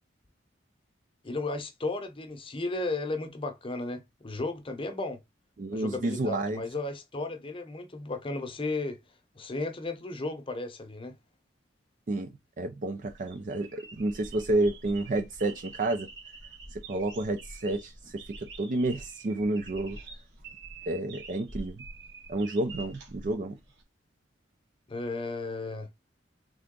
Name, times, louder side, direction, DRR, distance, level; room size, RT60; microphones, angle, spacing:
voice 1, 1.2-5.2 5.7-9.0 9.4-11.2 24.9-25.9, left 2 dB, 30° left, 0.7 m, -34 dB
voice 2, 5.6-6.6 12.1-12.3 12.6-16.1 16.7-18.2 18.6-20.0 20.9-21.8 22.3-23.6, right 2 dB, 45° right, 0.4 m, -30 dB
sound 1, 12.9-23.8, right 3 dB, 65° right, 1.7 m, -46 dB
3.7 x 3.4 x 3.7 m
head